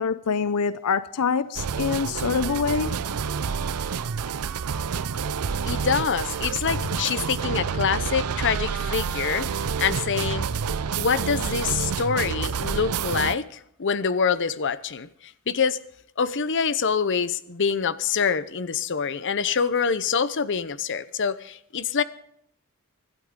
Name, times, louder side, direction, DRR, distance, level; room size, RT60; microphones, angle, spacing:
voice 1, 0.0-3.0, left 6 dB, 85° left, 0.5 m, -25 dB
sound 1, 1.6-13.4, right 6 dB, 85° right, 0.6 m, -28 dB
voice 2, 5.7-9.5 9.8-10.5 11.0-13.5 13.8-15.1 15.5-15.8 16.2-22.0, left 6 dB, 55° left, 0.7 m, -25 dB
25.0 x 12.0 x 3.8 m
head